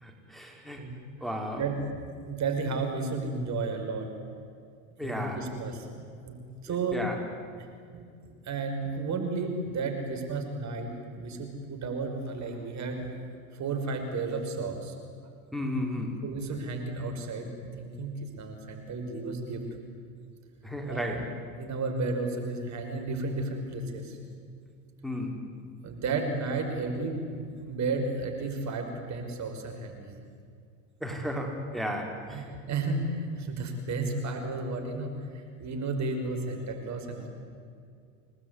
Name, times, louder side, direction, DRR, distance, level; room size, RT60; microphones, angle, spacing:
voice 1, 0.0-0.8 1.2-1.6 5.0-5.4 6.7-7.2 15.5-16.1 20.6-21.3 25.0-25.4 31.0-32.4, equal, ahead, 1 dB, 5.1 m, -34 dB
voice 2, 1.6-4.1 5.0-6.4 6.6-7.0 7.9-8.0 8.4-10.9 11.1-13.1 13.5-14.9 16.2-17.5 17.8-19.6 20.9-21.2 21.6-24.2 25.8-30.2 32.2-37.3, right 3 dB, 45° right, 5 dB, 5.7 m, -33 dB
29.0 x 20.0 x 9.8 m, 2.3 s
hypercardioid pair, 80°, 40 cm